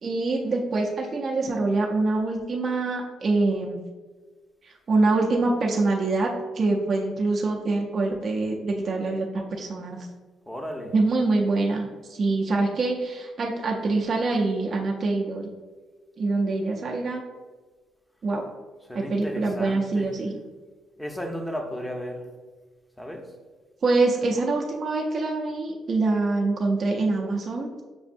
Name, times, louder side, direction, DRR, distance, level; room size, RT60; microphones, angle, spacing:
voice 1, 0.0-3.8 4.6-6.3 6.5-10.1 10.9-15.5 16.2-17.2 18.2-18.4 18.9-20.4 23.8-27.7, right 3 dB, 45° right, -1 dB, 0.5 m, -25 dB
voice 2, 10.5-11.0 18.8-20.2 21.0-22.3 23.0-23.3, equal, 10° left, 3 dB, 0.6 m, -34 dB
6.1 x 2.5 x 2.5 m, 1.4 s
cardioid pair, 90°, 0 cm